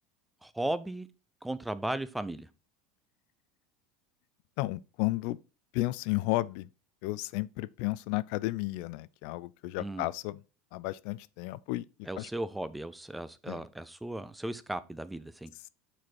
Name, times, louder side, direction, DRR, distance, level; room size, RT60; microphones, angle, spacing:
voice 1, 0.4-1.1 1.4-2.5 9.8-10.1 12.1-15.5, right 1 dB, 5° right, 0.6 m, -36 dB
voice 2, 4.6-5.4 5.7-6.7 7.0-10.4 10.7-12.3 13.5-13.6, left 19 dB, 65° left, 0.3 m, -33 dB
6.0 x 4.7 x 4.4 m
hypercardioid pair, 95°, 0 cm